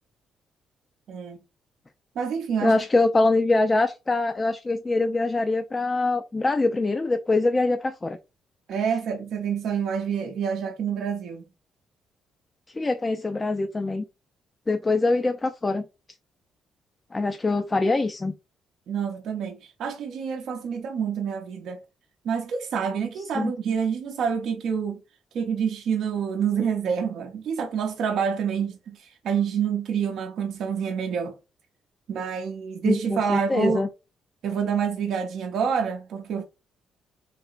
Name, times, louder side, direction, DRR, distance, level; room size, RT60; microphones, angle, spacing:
voice 1, 1.1-1.4 2.2-2.8 8.7-11.5 18.9-21.8 22.2-25.0 25.3-31.4 32.1-33.8 34.4-36.4, right 7 dB, 70° right, 0.6 m, -27 dB
voice 2, 2.6-8.2 12.8-14.0 14.7-15.8 17.1-18.3 23.4-23.5 32.8-33.9, left 2 dB, 25° left, 0.3 m, -24 dB
3.2 x 2.8 x 2.5 m
cardioid pair, 90°, 0 cm